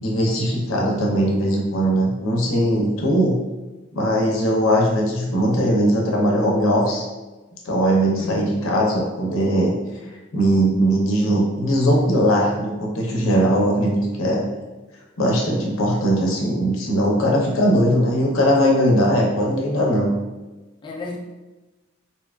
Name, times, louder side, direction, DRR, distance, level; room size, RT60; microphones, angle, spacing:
voice 1, 0.0-3.3 3.9-7.0 7.6-9.7 10.3-14.5 15.2-20.1, equal, 70° left, -2 dB, 0.6 m, -19 dB
voice 2, 8.2-8.6 20.8-21.2, left 3 dB, 20° left, -1 dB, 0.3 m, -33 dB
2.8 x 2.3 x 2.2 m, 1.2 s
head